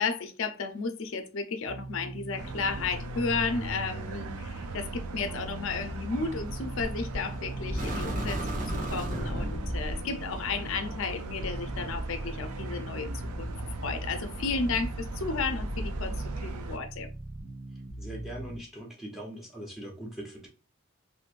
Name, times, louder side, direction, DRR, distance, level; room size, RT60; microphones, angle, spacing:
voice 1, 0.0-13.1 13.4-13.5 13.8-17.1, left 4 dB, 65° left, 0.5 m, -33 dB
sound 1, 1.6-18.6, right 1 dB, 65° right, 0.9 m, -41 dB
sound 2, 2.4-16.8, right 2 dB, 85° right, 0.4 m, -38 dB
sound 3, 6.8-7.2 7.7-10.0, right 1 dB, 35° right, 0.7 m, -33 dB
voice 2, 18.0-20.5, right 1 dB, ahead, 0.7 m, -41 dB
3.1 x 2.6 x 2.4 m
head